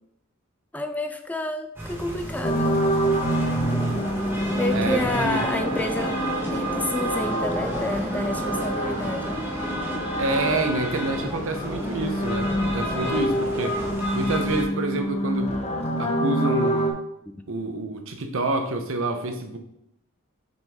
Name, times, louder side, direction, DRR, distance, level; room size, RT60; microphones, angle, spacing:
voice 1, 0.7-2.8 3.7-3.8 4.5-6.2 6.5-9.4, left 1 dB, 5° left, 7 dB, 0.3 m, -29 dB
sound 1, 1.8-14.6, right 1 dB, 10° right, 1.3 m, -31 dB
sound 2, 2.4-11.0 11.3-16.9, equal, 30° left, 0.9 m, -27 dB
voice 2, 4.7-5.4 10.2-13.8 14.1-15.5 16.0-16.9 17.5-19.6, right 2 dB, 70° right, 6 dB, 0.8 m, -27 dB
6.2 x 5.2 x 3.6 m, 0.78 s
head